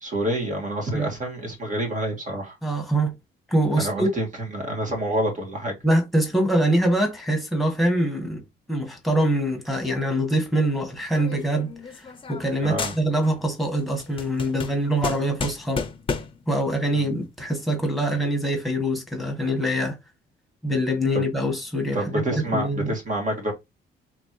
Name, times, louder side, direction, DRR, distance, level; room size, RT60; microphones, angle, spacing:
voice 1, 0.0-2.6 3.8-5.7 12.6-12.9 16.9-17.1 21.1-21.3 21.9-23.5, right 1 dB, 40° right, 2.1 m, -28 dB
voice 2, 2.6-3.1 3.5-4.1 5.8-8.4 8.7-15.8 16.5-20.0 20.6-22.2 22.5-22.9, right 1 dB, ahead, 1.6 m, -24 dB
sound 1, 11.1-12.5 12.8-13.5 13.8-16.5, left 4 dB, 25° left, 0.9 m, -32 dB
4.2 x 3.1 x 3.2 m
cardioid pair, 90°, 20 cm